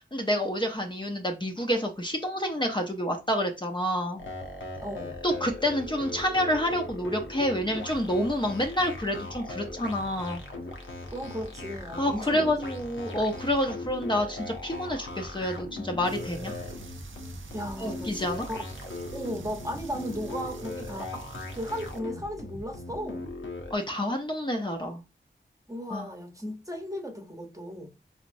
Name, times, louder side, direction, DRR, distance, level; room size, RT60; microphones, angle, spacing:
voice 1, 0.1-4.2 5.2-10.4 12.0-16.5 17.8-18.5 23.7-25.0 25.9-26.1, equal, 25° left, 0.6 m, -28 dB
sound 1, 4.2-23.8, left 2 dB, 85° left, 0.9 m, -39 dB
voice 2, 4.8-5.2 11.1-12.8 17.5-18.6 19.1-21.2 21.5-23.3 25.7-27.9, equal, 15° right, 0.9 m, -36 dB
sound 2, 16.0-22.0, right 4 dB, 90° right, 0.5 m, -46 dB
4.2 x 3.0 x 2.6 m
wide cardioid pair, 50°, 20 cm